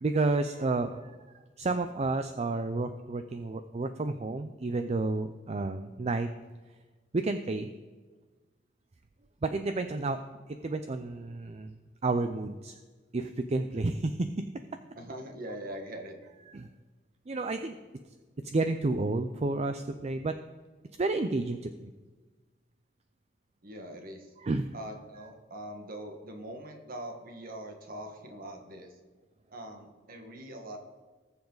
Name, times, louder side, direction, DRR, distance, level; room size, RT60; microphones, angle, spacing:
voice 1, 0.0-1.1 1.6-6.3 7.1-7.7 9.4-10.2 10.6-11.7 12.0-12.7 13.1-14.5 16.5-16.7 17.3-17.7 18.5-20.3 21.0-21.9 24.4-24.7, right 3 dB, 35° right, 9 dB, 0.5 m, -30 dB
voice 2, 15.0-16.2 23.6-24.3 24.7-28.9 29.5-30.8, right 1 dB, 50° right, 4 dB, 1.6 m, -42 dB
19.0 x 7.1 x 3.9 m, 1.3 s
head